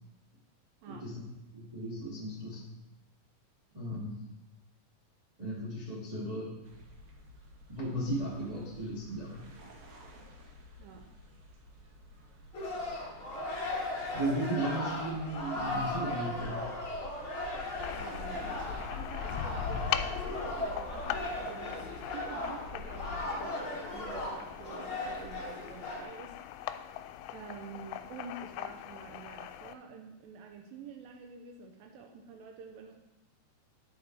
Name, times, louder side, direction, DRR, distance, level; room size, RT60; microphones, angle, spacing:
voice 1, 0.9-2.7 3.7-4.2 5.4-6.6 7.7-9.5 14.1-16.7, right 1 dB, 15° right, -7 dB, 1.5 m, -36 dB
sound 1, 6.6-23.2, left 1 dB, 65° right, 1.9 m, -52 dB
voice 2, 10.8-11.1 17.9-26.4 26.7-27.0 27.3-32.9, right 5 dB, 85° right, 3 dB, 2.0 m, -48 dB
sound 2, 12.5-26.0, left 2 dB, 60° left, 1.3 m, -37 dB
sound 3, 17.8-29.7, left 12 dB, 85° left, 2.7 m, -41 dB
12.5 x 4.8 x 4.0 m, 0.93 s
omnidirectional pair, 5.1 m